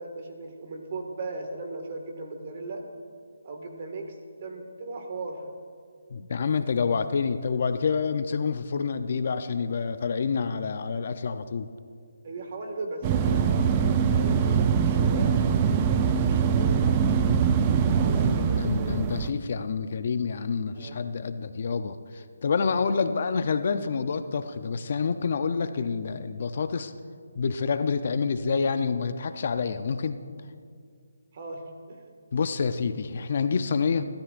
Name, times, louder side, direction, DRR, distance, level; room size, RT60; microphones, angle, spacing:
voice 1, 0.0-2.8 3.4-4.1 4.4-5.4 12.2-17.3 17.9-19.1 20.7-21.0 31.3-32.1, right 2 dB, 40° right, 3 dB, 1.9 m, -38 dB
voice 2, 6.1-11.7 18.1-26.9 27.4-30.2 32.3-34.0, left 5 dB, 45° left, 10 dB, 0.6 m, -28 dB
sound 1, 13.0-19.3, right 6 dB, 20° right, 0.5 m, -23 dB
24.5 x 13.0 x 2.6 m, 2.1 s
hypercardioid pair, 165°, 0 cm